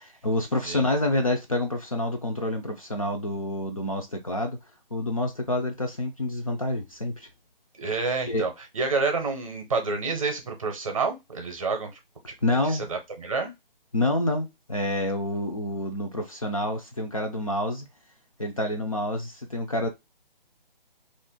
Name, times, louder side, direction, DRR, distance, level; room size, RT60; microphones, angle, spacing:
voice 1, 0.0-4.6 4.9-7.3 8.3-8.5 12.4-12.9 13.9-17.9 18.4-19.9, left 1 dB, 35° left, 0.4 m, -28 dB
voice 2, 7.8-11.9 12.7-13.5, right 4 dB, 35° right, 0.7 m, -28 dB
2.5 x 2.1 x 3.5 m
hypercardioid pair, 165°, 29 cm